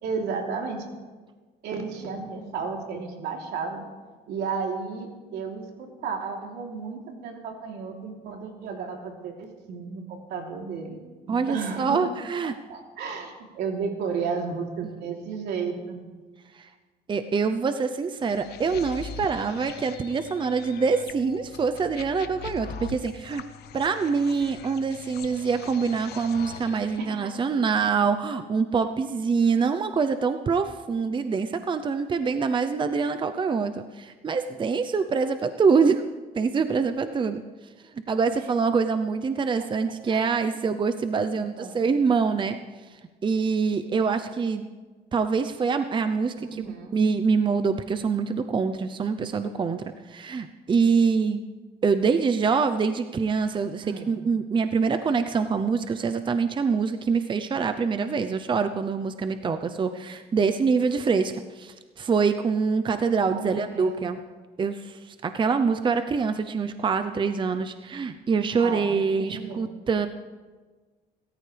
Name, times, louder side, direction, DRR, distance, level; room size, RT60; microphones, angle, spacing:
voice 1, 0.0-0.9 1.6-3.9 4.3-12.0 12.7-16.0 25.2-25.3 27.0-27.3 40.1-40.6 41.3-41.7 46.4-47.0 53.8-54.2 63.2-64.0 68.6-69.7, right 5 dB, 75° right, 0 dB, 3.4 m, -33 dB
voice 2, 11.3-12.5 16.5-16.7 17.1-23.4 23.7-36.0 36.3-37.4 37.8-42.6 42.8-44.7 45.1-46.6 46.9-51.4 51.8-64.2 64.6-70.1, right 5 dB, 30° right, 9 dB, 0.7 m, -25 dB
sound 1, 18.3-27.1, left 6 dB, 70° left, 1.0 m, -42 dB
27.5 x 14.0 x 3.4 m, 1.4 s
cardioid pair, 110°, 17 cm